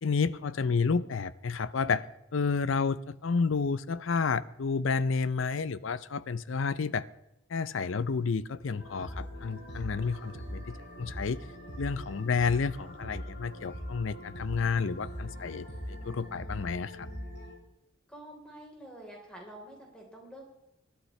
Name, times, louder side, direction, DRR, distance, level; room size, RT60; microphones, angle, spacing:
voice 1, 0.0-2.0 2.3-7.1 7.5-11.4 11.8-17.1, left 5 dB, 75° left, 17 dB, 0.5 m, -30 dB
voice 2, 0.7-1.0 18.1-20.5, right 1 dB, 5° left, -1 dB, 3.8 m, -48 dB
sound 1, 8.8-17.5, equal, 55° left, 4.6 m, -41 dB
21.0 x 11.5 x 3.2 m, 0.89 s
head